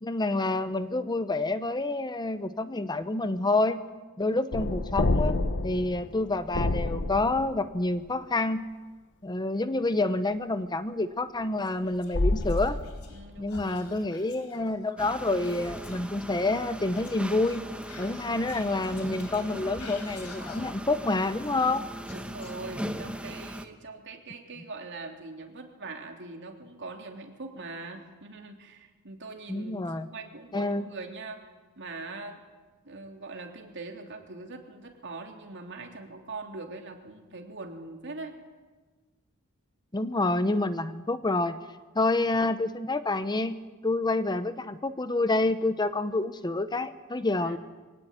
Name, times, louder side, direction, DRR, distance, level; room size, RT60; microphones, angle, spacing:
voice 1, 0.0-3.8 4.2-5.4 5.6-8.7 9.2-12.8 13.4-17.6 18.0-21.9 29.5-30.1 30.5-30.8 39.9-41.6 41.9-43.6 43.8-47.6, left 2 dB, 20° left, 12 dB, 0.8 m, -28 dB
sound 1, 4.5-7.8 12.1-13.4, left 2 dB, 55° left, 0.9 m, -28 dB
Whispering, 11.6-13.2 13.5-16.1 16.9-20.9 21.1-23.0, left 3 dB, 85° left, 4.2 m, -49 dB
voice 2, 13.1-14.1 22.0-31.5 31.8-32.4 32.8-38.4 47.4-47.6, right 3 dB, 55° right, 3 dB, 3.3 m, -42 dB
sound 2, 15.0-23.7, equal, 5° right, 1.3 m, -39 dB
24.0 x 18.0 x 8.9 m, 1.3 s
head